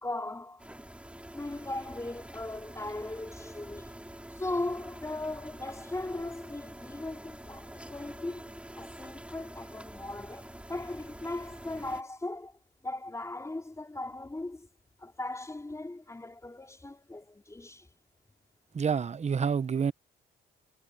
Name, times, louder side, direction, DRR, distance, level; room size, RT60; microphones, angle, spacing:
voice 1, 0.0-0.7 1.3-3.9 4.3-14.7 15.0-17.9, left 2 dB, 15° left, 4.2 m, -38 dB
sound 1, 0.6-12.0, right 1 dB, 5° right, 4.2 m, -46 dB
voice 2, 18.7-19.9, right 6 dB, 35° right, 0.9 m, -28 dB
cardioid pair, 90°, 20 cm